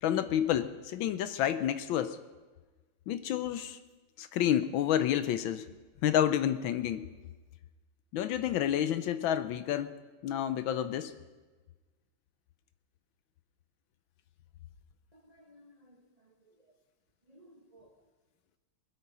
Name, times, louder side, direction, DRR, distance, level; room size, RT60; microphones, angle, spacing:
voice 1, 0.0-2.2 3.1-3.8 4.2-5.7 6.0-7.1 8.1-9.9 10.2-11.1, left 10 dB, 75° left, 12 dB, 1.3 m, -29 dB
voice 2, 15.1-16.6 17.3-17.9, equal, 35° right, 3 dB, 0.6 m, -59 dB
20.5 x 8.6 x 5.5 m, 1.3 s
omnidirectional pair, 2.3 m